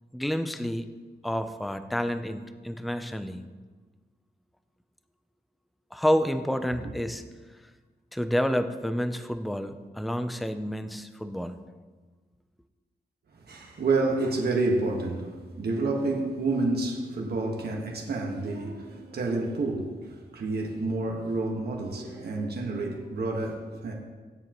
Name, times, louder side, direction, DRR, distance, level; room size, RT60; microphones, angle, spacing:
voice 1, 0.1-0.8 1.2-3.4 5.9-7.2 8.1-11.6, equal, ahead, 9 dB, 0.4 m, -29 dB
voice 2, 13.3-23.9, right 3 dB, 70° right, 0 dB, 1.5 m, -29 dB
16.5 x 9.5 x 3.0 m, 1.4 s
wide cardioid pair, 170°, 17 cm